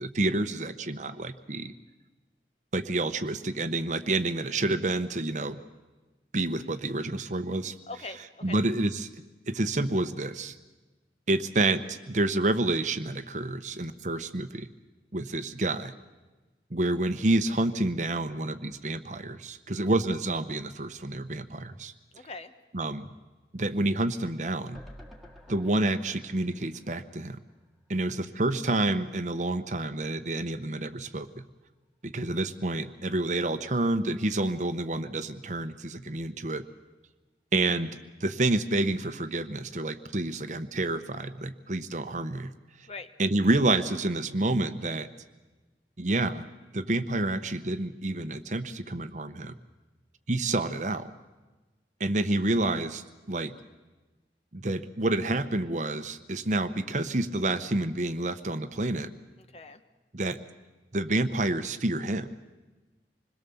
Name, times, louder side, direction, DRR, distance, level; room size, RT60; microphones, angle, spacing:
voice 1, 0.0-1.7 2.7-5.6 6.3-7.7 8.4-10.5 11.3-14.7 15.1-15.9 16.7-21.9 22.7-23.1 23.5-24.8 25.5-27.4 27.9-31.3 32.0-36.6 37.5-37.9 38.2-42.5 43.2-45.1 46.0-46.4 46.7-49.5 50.3-51.1 52.0-53.5 54.5-59.1 60.1-60.4 60.9-62.3, right 2 dB, 45° right, 10 dB, 0.9 m, -28 dB
voice 2, 7.9-8.2 8.4-8.6 22.1-22.5 42.9-43.1 59.4-59.8, left 3 dB, 35° left, 9 dB, 1.1 m, -41 dB
sound 1, 24.7-28.0 28.3-28.4 28.7-28.8, equal, ahead, 2.0 m, -52 dB
27.0 x 21.5 x 7.1 m, 1.2 s
head